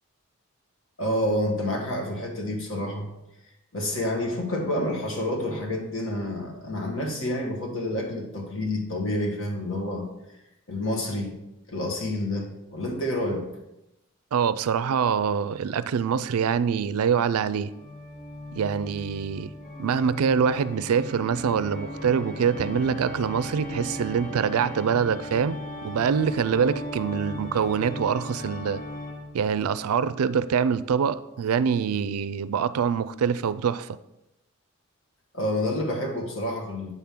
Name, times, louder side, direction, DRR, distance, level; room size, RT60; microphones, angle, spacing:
voice 1, 1.0-3.1 3.7-10.1 10.7-11.3 11.7-13.5 35.3-36.9, left 1 dB, 60° left, 1 dB, 1.4 m, -28 dB
voice 2, 14.3-17.7 18.5-19.5 19.8-28.8 29.3-33.9, right 7 dB, 85° right, 15 dB, 0.4 m, -25 dB
Organ, 17.7-29.5, left 1 dB, 35° left, 0.8 m, -37 dB
8.0 x 5.8 x 3.6 m, 0.92 s
head